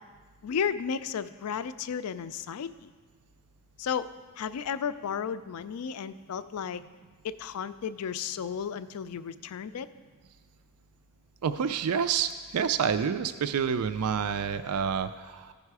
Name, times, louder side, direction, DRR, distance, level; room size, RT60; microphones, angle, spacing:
voice 1, 0.4-2.9 3.8-4.1 4.4-6.8 7.2-9.9, left 7 dB, 75° left, 13 dB, 0.4 m, -33 dB
voice 2, 11.4-15.5, right 7 dB, 90° right, 10 dB, 0.4 m, -28 dB
14.5 x 5.5 x 4.7 m, 1.5 s
head